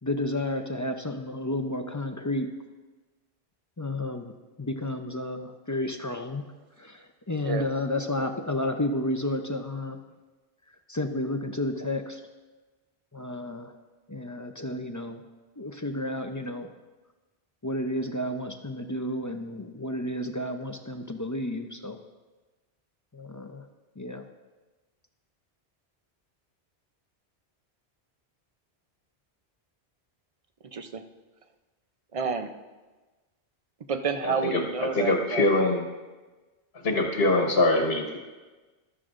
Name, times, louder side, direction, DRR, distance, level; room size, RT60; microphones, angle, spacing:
voice 1, 0.0-2.5 3.8-4.3 4.6-6.4 6.8-10.0 10.9-12.2 13.1-13.7 14.1-15.2 15.6-16.7 17.6-22.0 23.1-23.7 24.0-24.2, left 1 dB, 25° left, 5 dB, 0.5 m, -31 dB
voice 2, 30.6-31.0 32.1-32.5 33.9-35.5, right 6 dB, 40° right, 7 dB, 0.6 m, -30 dB
voice 3, 34.2-35.8 36.8-38.2, left 2 dB, 65° left, 2 dB, 1.4 m, -24 dB
15.0 x 12.5 x 2.5 m, 1.2 s
omnidirectional pair, 1.1 m